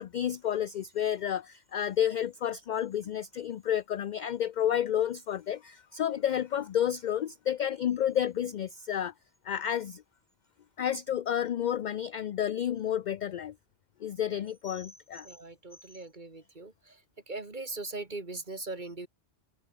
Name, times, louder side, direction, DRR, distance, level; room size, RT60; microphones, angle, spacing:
voice 1, 0.0-9.1 9.4-10.0 10.8-13.5 14.0-15.3, left 10 dB, 60° left, 0.5 m, -30 dB
voice 2, 15.2-17.0 17.3-19.1, right 2 dB, 40° right, 2.7 m, -40 dB
omnidirectional pair, 1.2 m